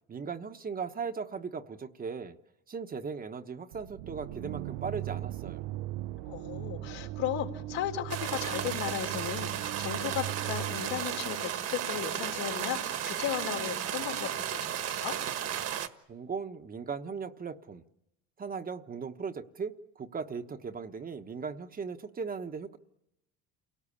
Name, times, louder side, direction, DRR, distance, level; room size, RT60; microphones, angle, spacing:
voice 1, 0.1-2.4 2.7-5.7 16.1-17.8 18.4-22.8, right 5 dB, 25° right, 8 dB, 1.2 m, -38 dB
sound 1, 3.7-11.6, right 15 dB, 80° right, 1.0 m, -39 dB
voice 2, 6.2-15.1, left 11 dB, 80° left, 2 dB, 3.9 m, -36 dB
sound 2, 8.1-15.9, right 10 dB, 50° right, 1.6 m, -34 dB
28.5 x 18.5 x 8.6 m, 0.88 s
cardioid pair, 115°, 33 cm